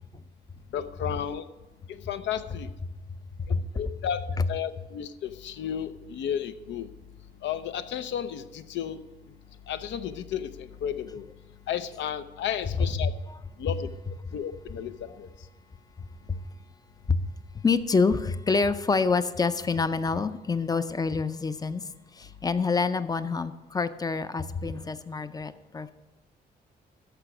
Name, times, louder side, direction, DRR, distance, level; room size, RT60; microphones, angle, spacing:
voice 1, 0.7-1.4 1.9-2.7 3.5-6.9 7.4-9.0 9.7-11.2 11.7-13.1 13.6-13.9 14.3-15.3, left 9 dB, 85° left, 12 dB, 0.6 m, -33 dB
voice 2, 17.5-21.9 22.1-25.9, left 4 dB, 20° left, 13 dB, 0.4 m, -27 dB
13.5 x 5.1 x 5.9 m, 1.1 s
cardioid pair, 140°, 18 cm